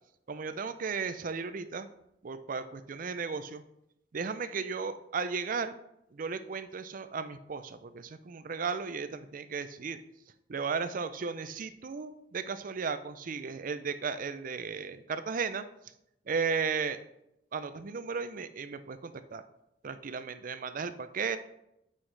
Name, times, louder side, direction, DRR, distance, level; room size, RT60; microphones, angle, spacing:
voice 1, 0.3-1.9 2.2-3.6 4.1-5.7 6.1-10.0 10.5-15.6 16.3-17.0 17.5-19.4 19.8-21.4, right 5 dB, 50° right, 11 dB, 0.5 m, -35 dB
8.8 x 5.6 x 3.3 m, 0.82 s
head